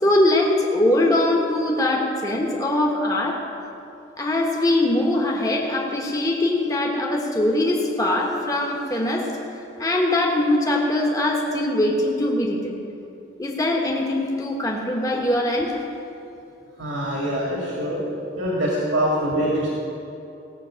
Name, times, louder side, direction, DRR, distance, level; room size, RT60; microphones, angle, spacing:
voice 1, 0.0-3.4 4.2-9.3 9.8-12.8 13.4-15.8, left 1 dB, 20° left, -1 dB, 1.3 m, -22 dB
voice 2, 16.8-18.0 18.4-19.7, equal, 80° right, -3 dB, 2.2 m, -24 dB
17.0 x 6.2 x 7.5 m, 2.9 s
head